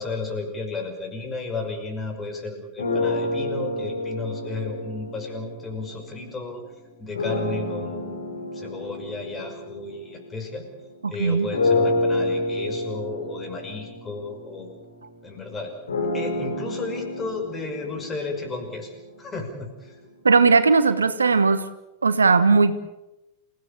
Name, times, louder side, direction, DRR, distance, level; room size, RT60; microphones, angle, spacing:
voice 1, 0.0-6.6 7.0-10.6 11.1-14.8 15.2-15.8 16.1-18.9 19.2-20.0, left 3 dB, 20° left, 4 dB, 5.7 m, -33 dB
sound 1, 2.8-6.3 7.1-10.9 11.5-19.5, left 2 dB, 75° left, 6.6 m, -29 dB
voice 2, 11.0-11.5 20.2-21.6 22.0-22.8, right 4 dB, 75° right, 12 dB, 1.4 m, -18 dB
28.5 x 16.5 x 8.6 m, 0.96 s
figure-of-eight pair, 90°, 0 cm